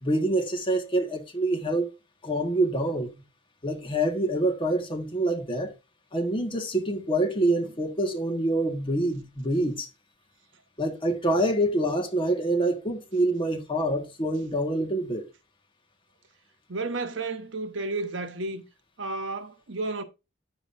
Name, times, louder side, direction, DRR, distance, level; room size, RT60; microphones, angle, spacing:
voice 1, 0.0-1.9 2.2-3.1 3.6-5.7 6.1-9.9 10.8-15.2, right 1 dB, 25° left, 1.6 m, -26 dB
voice 2, 16.7-18.6 19.0-20.0, right 3 dB, 75° right, 1.1 m, -32 dB
9.6 x 7.1 x 2.6 m
head